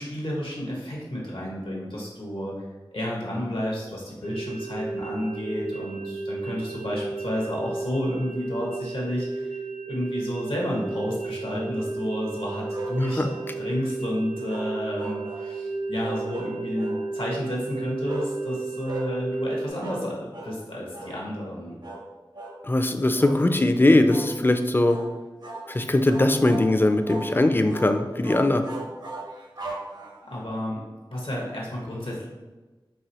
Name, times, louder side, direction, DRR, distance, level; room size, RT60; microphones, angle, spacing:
voice 1, 0.0-2.6 2.9-9.6 9.9-13.3 13.6-21.7 30.2-30.8 31.1-32.3, left 1 dB, 85° left, -4 dB, 1.2 m, -31 dB
sound 1, 4.2-19.7, right 3 dB, 85° right, 0.7 m, -33 dB
sound 2, 12.7-13.5 14.5-15.5 16.0-17.0 18.1-18.3 18.8-19.1 19.8-20.1 20.3-20.6 20.9-21.2 21.8-22.1 22.3-22.6 23.2-23.4 24.1-24.3 24.8-25.1 25.4-25.7 26.1-26.7 27.1-27.3 27.7-27.9 28.2-30.4, right 2 dB, 55° right, 0.6 m, -38 dB
voice 2, 22.6-25.0 25.7-28.6, left 1 dB, 25° left, 7 dB, 0.3 m, -20 dB
4.8 x 3.0 x 2.8 m, 1.2 s
wide cardioid pair, 55°, 9 cm